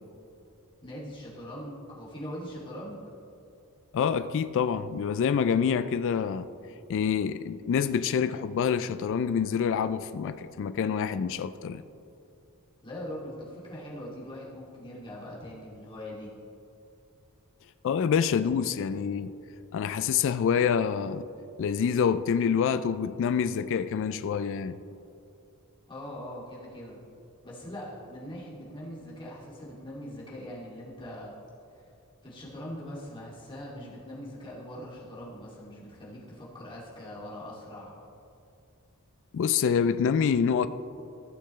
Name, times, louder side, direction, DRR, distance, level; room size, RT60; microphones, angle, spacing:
voice 1, 0.8-3.0 12.8-16.3 25.9-27.0 27.4-31.3 31.7-31.8 32.2-38.0, equal, 25° left, -6 dB, 2.4 m, -41 dB
voice 2, 3.9-6.5 6.9-11.8 17.8-19.3 19.7-21.3 21.6-24.8 39.3-40.7, left 7 dB, 60° left, 13 dB, 0.3 m, -26 dB
15.5 x 6.7 x 3.2 m, 2.7 s
head